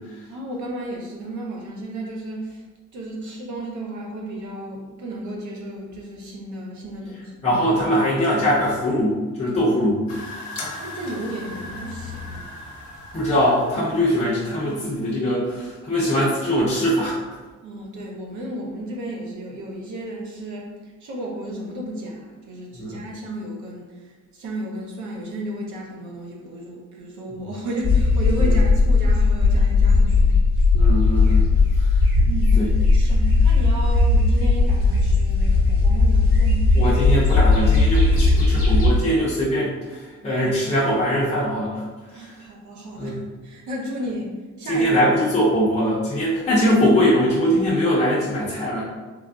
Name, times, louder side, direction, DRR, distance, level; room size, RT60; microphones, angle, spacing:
voice 1, 0.3-2.6 2.9-7.4 10.8-12.5 17.6-30.3 32.3-32.6 32.9-36.8 42.1-45.0, right 1 dB, 90° right, -1 dB, 0.8 m, -33 dB
voice 2, 7.4-10.0 13.1-17.2 22.7-23.0 30.7-31.4 31.8-31.9 32.6-32.7 36.8-41.8 43.0-43.2 44.7-48.8, equal, 20° left, -8 dB, 0.5 m, -21 dB
sound 1, 10.1-15.2, left 2 dB, 90° left, 0.6 m, -37 dB
sound 2, 27.8-39.0, left 3 dB, 5° right, 1.2 m, -17 dB
3.3 x 2.4 x 2.3 m, 1.3 s
cardioid pair, 150°, 29 cm